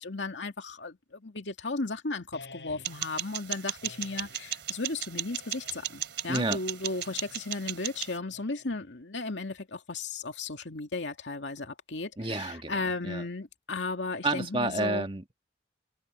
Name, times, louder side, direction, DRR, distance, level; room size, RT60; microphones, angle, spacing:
voice 1, 0.0-15.1, left 3 dB, 85° left, 2.4 m, -35 dB
sound 1, 2.3-3.2 3.8-4.5 5.3-6.0 6.8-7.4 8.3-9.0, left 3 dB, 70° left, 5.8 m, -51 dB
sound 2, 2.8-8.2, right 11 dB, 75° right, 2.7 m, -36 dB
voice 2, 6.3-6.6 12.2-12.7 13.0-13.2 14.2-15.4, right 2 dB, 30° right, 1.8 m, -30 dB
head